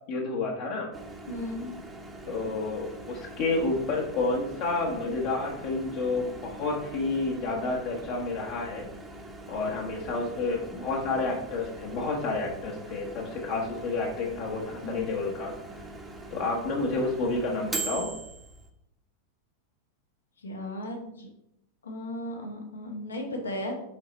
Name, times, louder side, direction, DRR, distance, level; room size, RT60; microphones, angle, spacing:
voice 1, 0.1-0.9 2.3-8.9 9.5-15.5 16.3-18.1, left 3 dB, 45° left, -2 dB, 1.1 m, -30 dB
Microwave oven, 0.9-18.7, right 2 dB, 15° right, 0.9 m, -42 dB
voice 2, 1.3-1.7 14.8-15.0 20.4-21.3 21.8-23.7, left 1 dB, 75° left, 2 dB, 1.4 m, -35 dB
6.4 x 3.9 x 4.2 m, 0.79 s
figure-of-eight pair, 90°, 0 cm